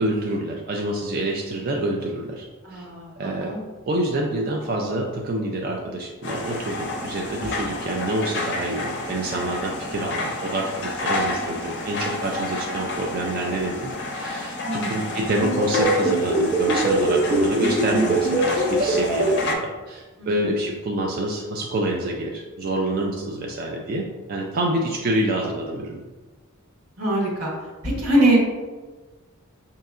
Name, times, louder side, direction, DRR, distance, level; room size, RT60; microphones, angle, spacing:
voice 1, 0.0-2.5 2.7-2.8 3.2-3.6 3.9-26.0, right 1 dB, 45° right, 0 dB, 0.3 m, -27 dB
voice 2, 2.6-3.6 14.6-14.9 20.2-20.3 27.0-27.5 27.8-28.4, right 1 dB, 85° right, -3 dB, 1.2 m, -22 dB
sound 1, 6.2-19.5, left 2 dB, 55° left, 0.5 m, -30 dB
sound 2, 15.4-19.3, right 1 dB, 60° right, 1.0 m, -22 dB
5.3 x 2.8 x 2.4 m, 1.3 s
head